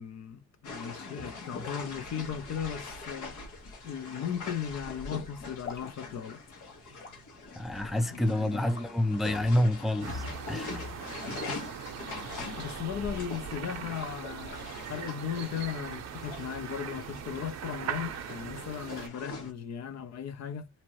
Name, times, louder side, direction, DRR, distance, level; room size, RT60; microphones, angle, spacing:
voice 1, 0.0-3.4 3.8-6.4 8.1-8.6 12.6-20.7, left 8 dB, 60° left, 0.7 m, -37 dB
sound 1, 0.6-19.5, left 3 dB, 80° left, 1.5 m, -42 dB
sound 2, 1.6-17.1, left 4 dB, 40° left, 1.8 m, -55 dB
voice 2, 7.6-10.8, left 1 dB, ahead, 0.5 m, -28 dB
sound 3, 10.0-19.1, right 9 dB, 60° right, 0.7 m, -40 dB
2.9 x 2.6 x 3.0 m
cardioid pair, 90°, 30 cm